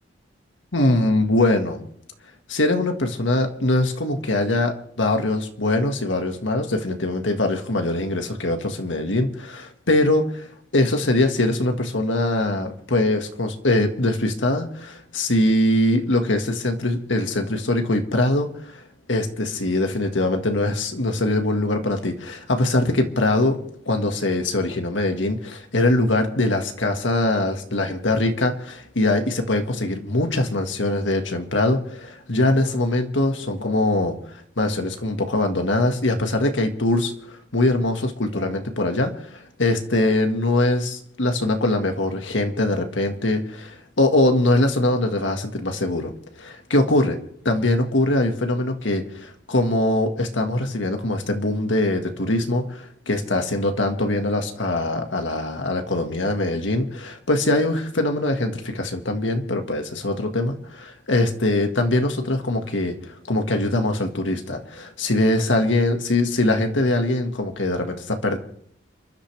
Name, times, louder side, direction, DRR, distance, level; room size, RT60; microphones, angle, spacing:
voice 1, 0.7-1.9 2.5-10.5 10.7-18.8 19.1-23.6 23.9-46.1 46.4-47.2 47.5-68.4, left 2 dB, 90° left, 5 dB, 1.9 m, -22 dB
29.5 x 12.0 x 3.5 m, 0.65 s
head